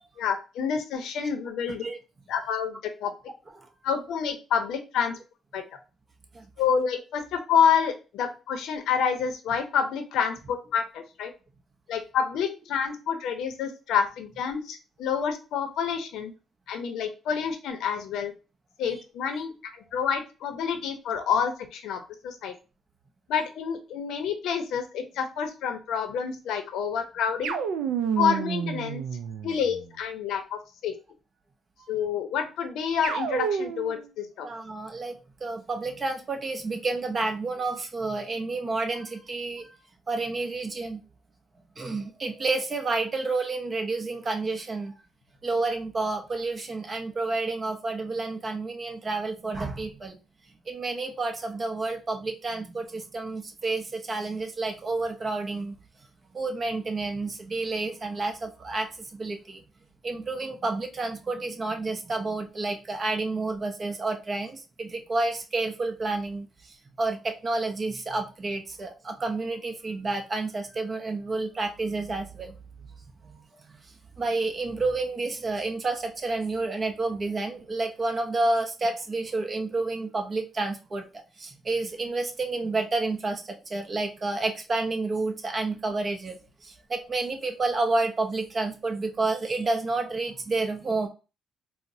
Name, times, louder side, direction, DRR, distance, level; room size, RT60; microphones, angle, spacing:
voice 1, 0.2-1.8 2.3-3.1 3.8-5.2 5.5-5.6 6.6-11.3 11.9-16.3 16.7-18.3 18.8-19.5 19.9-22.5 23.3-27.6 28.2-29.0 29.4-30.9 31.9-34.5, left 7 dB, 85° left, 7 dB, 0.6 m, -28 dB
sound 1, 27.4-29.9 33.0-34.1, right 7 dB, 85° right, 0.4 m, -29 dB
voice 2, 34.4-39.7 40.1-41.0 41.8-45.0 45.4-50.2 50.7-55.8 56.3-59.6 60.0-66.5 67.0-72.6 73.2-73.4 73.7-73.8 74.2-81.1 81.4-91.1, right 3 dB, 35° right, 5 dB, 0.7 m, -30 dB
4.0 x 2.1 x 2.6 m, 0.31 s
cardioid pair, 90°, 0 cm